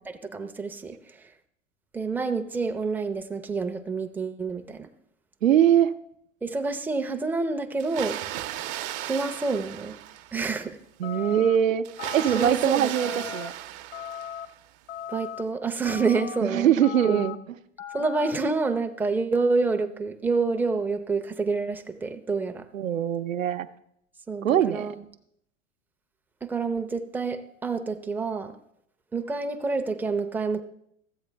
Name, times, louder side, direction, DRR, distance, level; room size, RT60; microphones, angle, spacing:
voice 1, 0.1-1.3 1.9-4.9 6.4-8.2 9.0-10.0 10.3-10.8 12.3-13.3 15.1-16.7 17.0-17.3 17.9-22.7 24.3-25.0 26.4-28.6 29.1-30.6, right 4 dB, 5° right, 6 dB, 0.5 m, -28 dB
voice 2, 5.4-5.9 11.0-11.9 12.1-13.5 16.4-17.4 22.7-23.7 24.4-24.9, right 10 dB, 85° right, 9 dB, 0.7 m, -22 dB
Water, 7.8-10.6 11.8-14.7, right 13 dB, 45° right, 0.7 m, -36 dB
sound 1, 11.0-11.6 12.0-12.5 13.0-13.5 13.9-14.5 14.9-15.4 15.9-16.4 16.8-17.4 17.8-18.3, left 10 dB, 65° left, 0.8 m, -38 dB
13.5 x 8.1 x 3.3 m, 0.72 s
hypercardioid pair, 100°, 39 cm